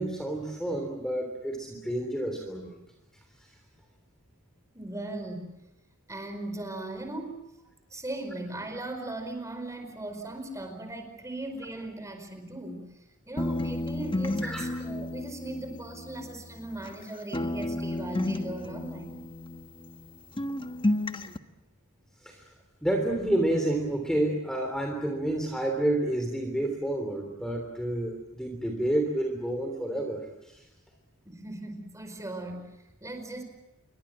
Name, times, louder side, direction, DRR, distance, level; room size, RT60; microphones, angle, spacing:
voice 1, 0.0-2.8 14.4-14.6 22.2-22.4 22.8-30.6, right 1 dB, 5° left, 3 dB, 3.2 m, -29 dB
voice 2, 4.7-5.6 6.1-7.4 7.9-12.9 13.3-19.2 31.2-33.4, right 2 dB, 15° right, 5 dB, 4.8 m, -38 dB
sound 1, 13.4-17.0 17.3-20.1 20.4-21.4, left 1 dB, 25° left, 1.2 m, -32 dB
28.0 x 23.5 x 7.5 m, 0.96 s
head